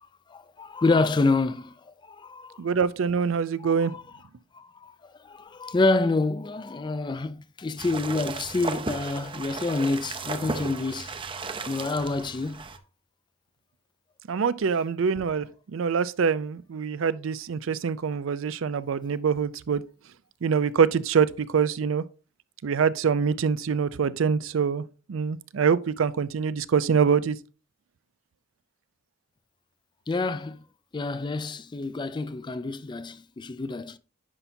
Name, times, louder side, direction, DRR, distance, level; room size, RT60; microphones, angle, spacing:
voice 1, 0.3-2.6 3.6-4.0 4.5-11.1 11.7-12.6 30.1-30.6 30.9-34.0, left 3 dB, 20° left, 0.3 m, -28 dB
voice 2, 2.6-4.0 14.3-19.8 20.4-22.0 22.6-27.4, right 6 dB, 75° right, 0.4 m, -25 dB
sound 1, 7.8-12.8, right 4 dB, 25° right, 0.6 m, -35 dB
9.8 x 5.7 x 2.7 m
head